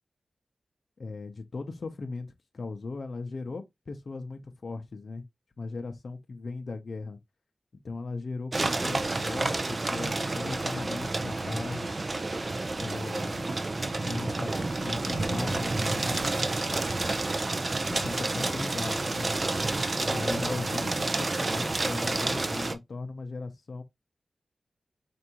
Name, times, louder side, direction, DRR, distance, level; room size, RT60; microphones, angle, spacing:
voice 1, 1.0-2.3 2.5-5.2 5.6-7.2 7.8-11.9 12.8-13.5 14.0-16.3 17.9-19.4 20.0-23.8, left 3 dB, 65° left, 0.5 m, -38 dB
sound 1, 8.5-22.7, right 2 dB, 40° right, 0.5 m, -29 dB
4.5 x 2.5 x 2.8 m
wide cardioid pair, 65°, 0 cm